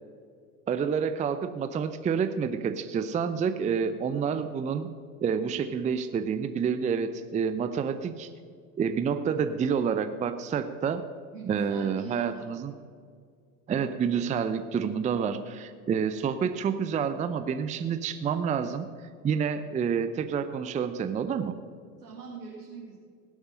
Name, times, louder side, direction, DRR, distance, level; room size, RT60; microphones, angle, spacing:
voice 1, 0.7-4.9 5.2-8.3 8.8-11.0 11.5-12.7 13.7-18.9 19.2-21.6, right 6 dB, 15° right, 10 dB, 0.5 m, -28 dB
voice 2, 11.3-12.7 22.0-23.0, right 5 dB, 90° right, -5 dB, 2.3 m, -43 dB
17.5 x 8.0 x 5.5 m, 2.1 s
hypercardioid pair, 80°, 45 cm